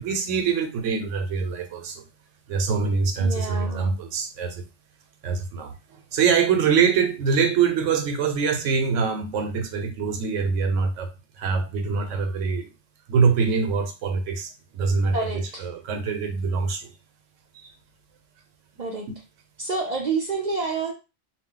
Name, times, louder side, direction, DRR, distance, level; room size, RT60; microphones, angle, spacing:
voice 1, 0.0-2.0 2.5-4.6 5.2-11.1 11.4-12.7 13.1-16.9 17.5-17.7 19.1-19.2, right 5 dB, 90° right, 1.0 m, -24 dB
voice 2, 3.2-4.0 15.1-15.6 18.8-19.1 19.6-20.9, right 4 dB, 50° right, 0.5 m, -28 dB
2.3 x 2.1 x 3.7 m
omnidirectional pair, 1.2 m